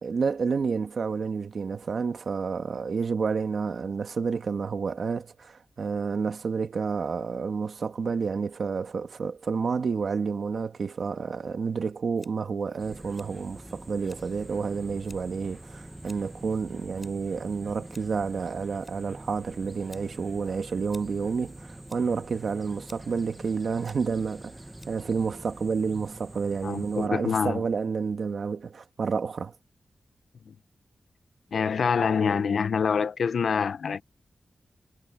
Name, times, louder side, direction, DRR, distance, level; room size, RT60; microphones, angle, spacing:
voice 1, 0.0-24.6 24.9-29.5, right 5 dB, 65° right, 1.4 m, -30 dB
Scissors, 12.1-25.9, left 2 dB, 20° left, 5.2 m, -58 dB
sound 1, 12.8-27.1, right 1 dB, 10° right, 1.0 m, -45 dB
voice 2, 26.6-27.6 30.5-30.6 31.5-34.0, left 6 dB, 80° left, 0.7 m, -26 dB
wide cardioid pair, 155°, 0 cm